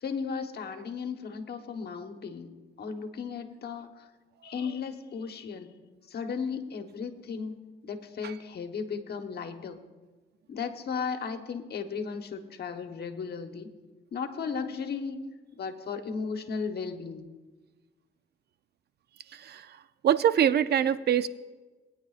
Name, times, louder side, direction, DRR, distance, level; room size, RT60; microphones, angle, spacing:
voice 1, 0.0-4.1 4.4-5.7 6.1-9.8 10.5-13.7 14.1-15.2 15.5-17.3, left 5 dB, 55° left, 6 dB, 1.2 m, -35 dB
voice 2, 19.3-21.3, right 9 dB, 55° right, 14 dB, 0.5 m, -25 dB
20.0 x 9.7 x 2.5 m, 1.3 s
cardioid pair, 90°, 20 cm